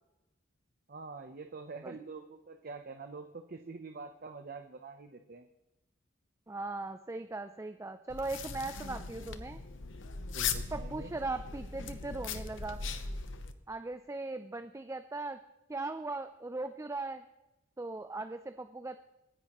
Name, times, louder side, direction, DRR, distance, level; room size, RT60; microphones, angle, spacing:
voice 1, 0.9-5.5 10.3-11.1, right 4 dB, 50° right, 6 dB, 0.8 m, -45 dB
voice 2, 6.5-9.6 10.7-12.8 13.7-15.4 15.7-17.2 17.8-19.0, right 2 dB, 15° right, 9 dB, 0.4 m, -39 dB
sound 1, 8.1-13.5, left 5 dB, 75° left, 0.9 m, -39 dB
27.0 x 10.5 x 3.0 m, 1.0 s
head